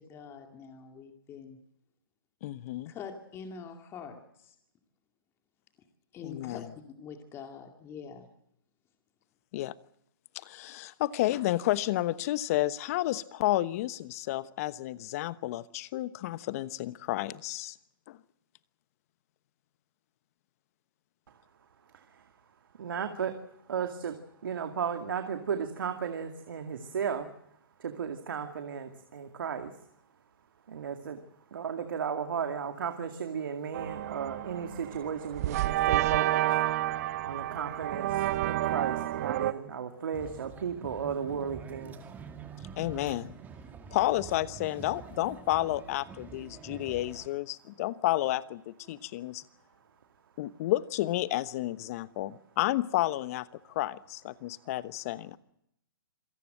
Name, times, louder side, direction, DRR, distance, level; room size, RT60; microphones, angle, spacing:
voice 1, 0.1-1.6 2.9-4.2 6.1-6.6 7.0-8.2, left 6 dB, 20° left, 4 dB, 2.3 m, -44 dB
voice 2, 2.4-2.9 6.2-6.7 9.5-9.7 10.3-17.8 18.1-18.2 42.8-43.4 43.9-49.4 50.4-55.4, left 16 dB, 40° left, 16 dB, 1.1 m, -31 dB
voice 3, 22.8-23.3 23.7-24.2 24.4-27.3 27.8-29.7 30.7-31.2 31.5-36.5 37.2-42.0, right 7 dB, 65° right, 6 dB, 2.3 m, -34 dB
sound 1, 33.7-39.5, right 15 dB, 45° right, 1.0 m, -30 dB
sound 2, 40.1-47.3, right 6 dB, 15° right, 2.2 m, -46 dB
27.0 x 18.0 x 7.8 m, 0.77 s
hypercardioid pair, 135°, 12 cm